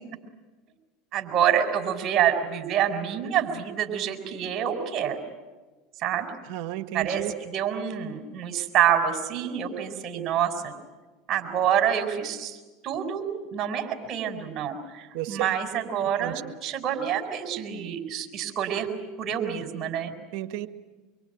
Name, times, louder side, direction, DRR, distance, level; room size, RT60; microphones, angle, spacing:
voice 1, 1.1-5.2 6.0-6.3 6.9-10.7 11.3-12.6 12.8-18.9 19.2-20.1, right 9 dB, 40° right, 6 dB, 4.7 m, -27 dB
voice 2, 6.5-7.3 15.1-15.5 16.2-16.4 20.3-20.7, right 14 dB, 65° right, 9 dB, 1.6 m, -32 dB
24.5 x 24.0 x 9.3 m, 1.2 s
hypercardioid pair, 90°, 0 cm